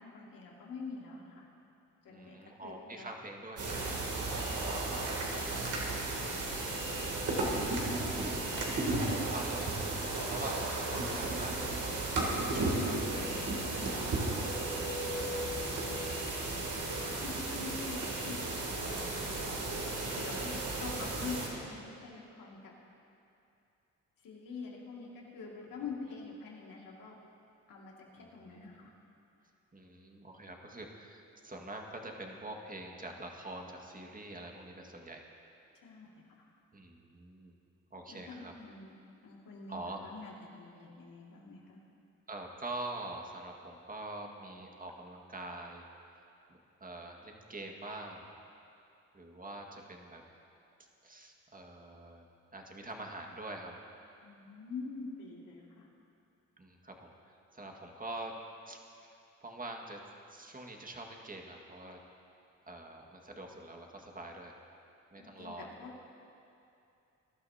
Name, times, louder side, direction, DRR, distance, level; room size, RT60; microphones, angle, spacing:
voice 1, 0.0-1.5 2.0-3.1 4.5-7.2 15.7-16.3 17.2-22.8 24.2-27.2 27.7-28.9 35.8-36.2 38.1-41.8 54.2-55.9 65.2-65.9, left 4 dB, 80° left, -2 dB, 2.3 m, -46 dB
voice 2, 2.1-4.0 7.8-14.4 20.1-20.9 28.2-28.8 29.7-35.2 36.7-37.6 37.9-38.5 39.7-40.0 42.3-45.9 46.8-48.3 49.1-50.2 51.0-52.2 52.5-53.8 56.6-58.4 58.7-60.0 60.3-62.0 62.7-64.6 65.1-65.7, right 2 dB, 25° right, 1 dB, 1.9 m, -45 dB
sound 1, 3.6-21.5, right 2 dB, 65° right, 2.8 m, -34 dB
21.0 x 12.0 x 2.8 m, 2.7 s
cardioid pair, 60°, 32 cm